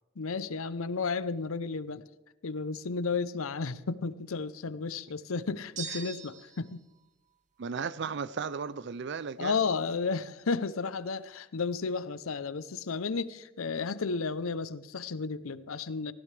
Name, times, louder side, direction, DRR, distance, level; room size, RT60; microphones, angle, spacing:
voice 1, 0.2-2.0 2.4-6.8 9.4-16.1, left 4 dB, 75° left, 0.6 m, -33 dB
sound 1, 5.8-6.7, right 6 dB, 35° right, 0.8 m, -41 dB
voice 2, 7.6-9.6, right 5 dB, 55° right, 0.4 m, -35 dB
18.5 x 15.5 x 3.3 m
head